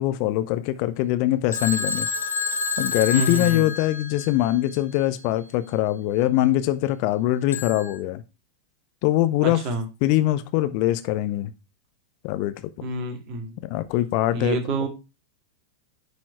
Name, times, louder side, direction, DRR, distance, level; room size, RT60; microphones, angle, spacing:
voice 1, 0.0-2.1 2.8-8.2 9.0-9.6 10.0-11.5 12.2-12.5 13.7-14.6, left 14 dB, 45° left, 0.6 m, -22 dB
Telephone, 1.5-4.5 7.5-8.0, left 4 dB, 75° left, 1.1 m, -28 dB
voice 2, 3.1-3.7 9.4-9.8 12.8-13.6 14.3-14.9, right 2 dB, 40° right, 2.0 m, -28 dB
9.8 x 4.3 x 4.6 m
figure-of-eight pair, 90°, 0 cm